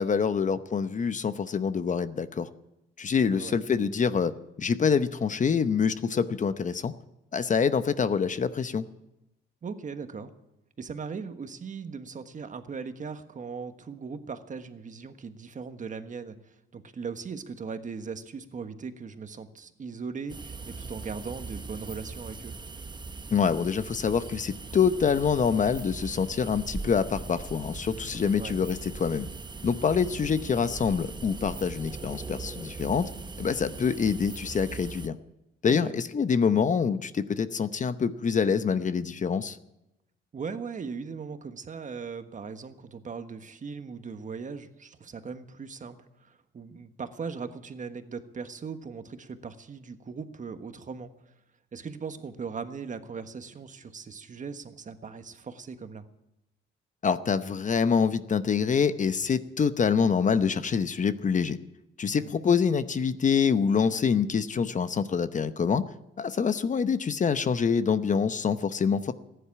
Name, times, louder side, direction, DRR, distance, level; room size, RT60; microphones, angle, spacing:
voice 1, 0.0-2.5 3.0-4.3 4.6-6.9 7.3-8.8 23.3-29.3 29.6-33.0 33.4-35.2 35.6-39.6 57.0-61.6 62.0-65.8 66.2-69.1, left 6 dB, 40° left, 12 dB, 0.8 m, -26 dB
voice 2, 9.6-10.3 10.8-22.5 28.4-28.6 35.7-35.9 40.3-51.1 51.7-56.0 62.1-62.3, right 5 dB, 40° right, 9 dB, 1.4 m, -39 dB
sound 1, 20.3-35.1, right 4 dB, 20° right, 1.0 m, -40 dB
15.0 x 10.5 x 8.5 m, 0.90 s
cardioid pair, 90°, 20 cm